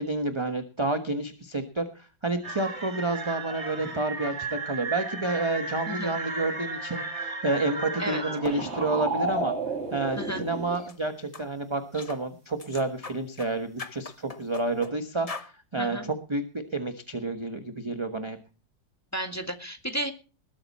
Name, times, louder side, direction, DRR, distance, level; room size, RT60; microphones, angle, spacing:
voice 1, 0.0-9.5 9.9-18.4, right 2 dB, 20° right, 6 dB, 1.1 m, -30 dB
sound 1, 2.4-10.8, right 3 dB, 35° right, 2.7 m, -33 dB
sound 2, 10.7-11.0 11.3-11.5 11.9-12.2 12.6-13.5 13.8-14.9 15.3-15.5, left 4 dB, 30° left, 0.7 m, -40 dB
voice 2, 19.1-20.1, right 1 dB, 10° left, 5 dB, 1.9 m, -32 dB
20.5 x 8.9 x 4.2 m, 0.35 s
omnidirectional pair, 2.0 m